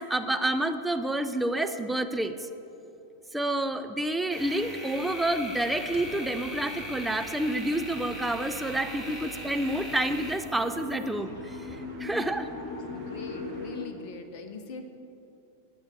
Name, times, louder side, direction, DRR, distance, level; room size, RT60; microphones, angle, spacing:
voice 1, 0.0-2.3 3.3-12.5, right 1 dB, 5° right, 8 dB, 0.7 m, -29 dB
sound 1, 4.3-11.1, equal, 10° left, 2.5 m, -40 dB
sound 2, 5.5-13.7, right 4 dB, 40° right, 2.5 m, -48 dB
sound 3, 8.7-13.9, left 3 dB, 65° left, 1.9 m, -41 dB
voice 2, 12.6-14.9, left 4 dB, 45° left, 7 dB, 1.4 m, -42 dB
18.0 x 7.0 x 7.0 m, 2.9 s
figure-of-eight pair, 90°, 0 cm